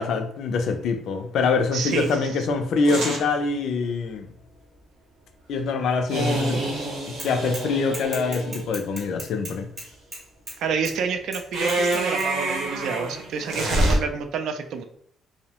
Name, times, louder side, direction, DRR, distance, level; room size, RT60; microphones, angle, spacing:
voice 1, 0.0-4.3 5.5-6.6 7.2-9.7, left 4 dB, 65° left, 6 dB, 0.4 m, -24 dB
voice 2, 1.7-2.2 10.6-14.8, right 5 dB, 70° right, 7 dB, 0.3 m, -28 dB
sound 1, 1.9-2.1 2.8-3.2 6.1-8.7 11.5-14.0, right 1 dB, 85° right, 0.8 m, -27 dB
Bicycle / Mechanisms, 7.2-7.7 7.9-10.6 10.9-11.0 11.3-12.3, right 1 dB, 30° right, 0.8 m, -37 dB
2.7 x 2.0 x 2.9 m, 0.67 s
cardioid pair, 160°, 0 cm